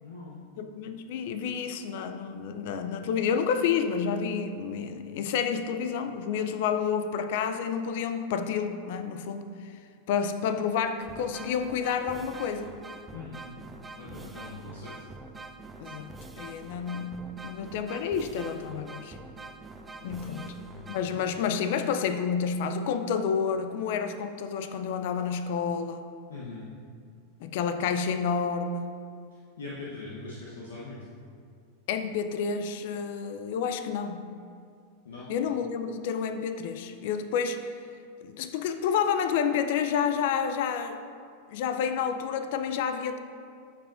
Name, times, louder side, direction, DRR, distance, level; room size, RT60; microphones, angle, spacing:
voice 1, 0.0-0.4 13.1-13.5 14.0-15.0 20.0-20.9 26.3-26.7 29.6-31.0 35.0-35.3, left 3 dB, 75° left, -6 dB, 0.9 m, -42 dB
voice 2, 0.6-9.8 10.1-12.7 15.8-19.2 20.0-20.5 20.9-26.0 27.4-28.9 31.9-34.3 35.3-37.9 38.2-41.0 41.5-43.2, left 7 dB, 60° left, 8 dB, 0.4 m, -29 dB
sound 1, 11.0-21.6, right 3 dB, 15° right, 0.5 m, -45 dB
12.0 x 4.8 x 2.5 m, 2.3 s
hypercardioid pair, 95°, 0 cm